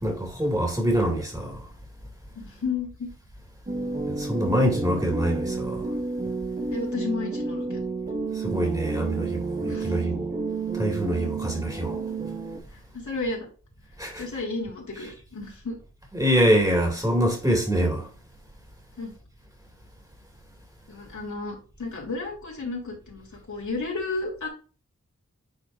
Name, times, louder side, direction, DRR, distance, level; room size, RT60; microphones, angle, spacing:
voice 1, 0.0-1.6 4.1-5.9 8.3-10.3 10.7-12.0 14.0-14.2 16.1-18.1, equal, 10° right, 2.4 m, -25 dB
voice 2, 2.3-3.1 6.7-7.8 9.6-9.9 12.7-13.5 14.2-15.8 19.0-19.1 20.9-24.5, left 3 dB, 75° left, 3.2 m, -33 dB
sound 1, 3.7-12.6, right 3 dB, 30° right, 1.8 m, -30 dB
9.5 x 4.5 x 2.6 m
wide cardioid pair, 85°, 30 cm